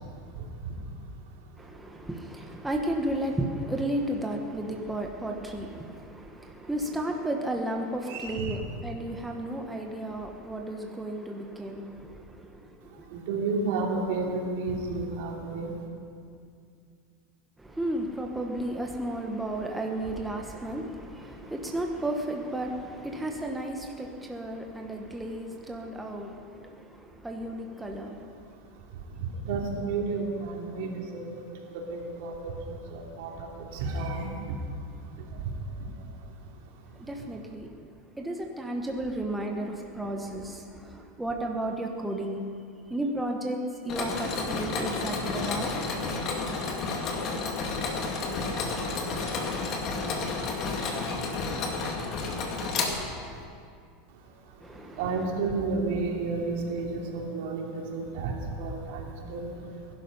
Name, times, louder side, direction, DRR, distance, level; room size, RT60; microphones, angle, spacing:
voice 1, 1.6-13.1 17.6-28.3 37.0-37.7 38.2-42.4 42.9-45.7 54.6-55.0, right 1 dB, 5° right, 2 dB, 1.2 m, -33 dB
voice 2, 8.1-8.6 13.1-15.7 29.4-31.4 31.7-34.3 55.0-59.5, right 3 dB, 70° right, 0 dB, 3.0 m, -31 dB
Mechanisms, 43.9-53.4, left 3 dB, 40° left, 2.2 m, -31 dB
20.5 x 11.5 x 5.5 m, 2.3 s
supercardioid pair, 140°, 0 cm